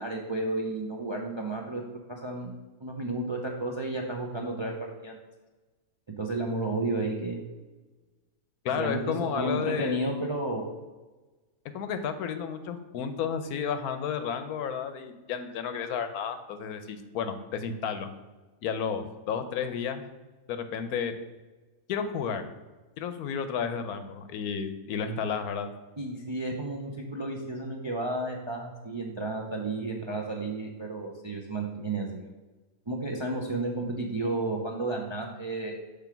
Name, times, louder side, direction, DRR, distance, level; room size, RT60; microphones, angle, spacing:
voice 1, 0.0-1.8 2.1-4.7 5.0-5.2 6.2-7.4 8.8-10.7 26.0-32.3 32.9-35.7, right 2 dB, 45° right, 0 dB, 0.3 m, -32 dB
voice 2, 8.6-10.0 11.7-18.1 18.6-20.0 20.5-21.1 21.9-22.4 23.0-25.7, left 7 dB, 90° left, 9 dB, 1.2 m, -32 dB
6.1 x 3.4 x 5.8 m, 1.2 s
omnidirectional pair, 1.5 m